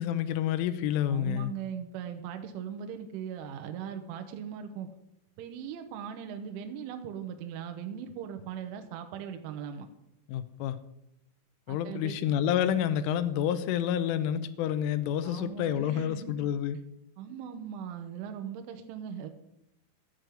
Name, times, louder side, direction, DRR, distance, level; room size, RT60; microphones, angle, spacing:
voice 1, 0.0-1.5 10.3-10.8 11.7-16.8, left 10 dB, 80° left, 11 dB, 3.2 m, -29 dB
voice 2, 1.1-4.9 5.4-9.9 11.7-12.2 15.2-16.4 17.2-19.3, right 8 dB, 75° right, 6 dB, 3.3 m, -39 dB
14.0 x 5.3 x 9.2 m, 0.87 s
omnidirectional pair, 6.0 m